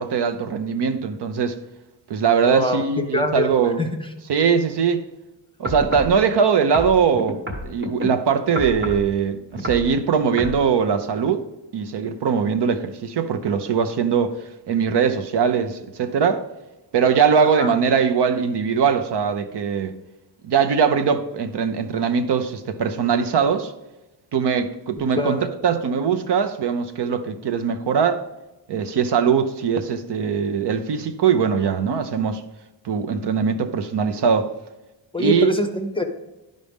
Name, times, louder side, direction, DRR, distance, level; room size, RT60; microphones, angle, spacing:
voice 1, 0.0-1.6 2.1-3.8 4.3-5.1 5.6-7.4 7.6-11.4 11.7-14.4 14.7-16.4 16.9-19.9 20.4-23.7 24.3-25.4 25.6-28.2 28.7-32.4 32.8-34.5 35.2-35.5, right 6 dB, 65° right, 0.7 m, -21 dB
voice 2, 2.5-2.8 3.1-3.5 3.8-3.9 17.4-17.7 25.2-25.5 35.1-36.0, left 1 dB, 10° left, 0.6 m, -23 dB
sound 1, 5.6-6.2 6.7-8.1 8.5-9.1 9.5-9.9 10.4-10.6 11.2-11.3, equal, 25° right, 1.1 m, -29 dB
11.5 x 5.3 x 3.5 m
wide cardioid pair, 180°, 44 cm